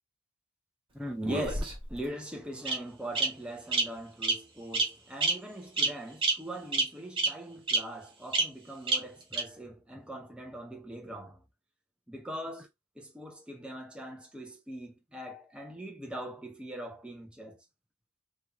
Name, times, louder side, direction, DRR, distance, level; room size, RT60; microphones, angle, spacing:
voice 1, 0.9-11.4 12.1-12.7 13.0-17.6, right 1 dB, 5° right, 0.8 m, -41 dB
Bird vocalization bird call bird song, 1.2-2.0 2.7-2.8 3.2-3.3 3.7-3.8 4.2-4.4 4.7-4.9 5.2-5.3 5.8-5.9 6.2-6.3 6.7-6.8 7.2-7.3 7.7-7.8 8.3-8.4 8.9-9.0 9.3-9.4, right 3 dB, 25° right, 1.5 m, -26 dB
3.5 x 3.1 x 3.4 m
head